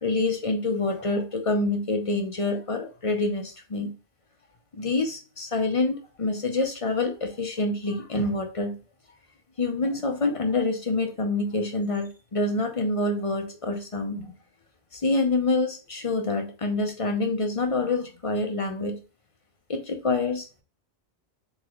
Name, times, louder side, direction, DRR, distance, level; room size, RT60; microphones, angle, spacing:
voice 1, 0.0-3.9 4.7-8.8 9.6-14.3 14.9-19.0 19.7-20.6, left 2 dB, 35° left, 4 dB, 0.6 m, -26 dB
4.0 x 3.6 x 3.0 m, 0.34 s
omnidirectional pair, 1.2 m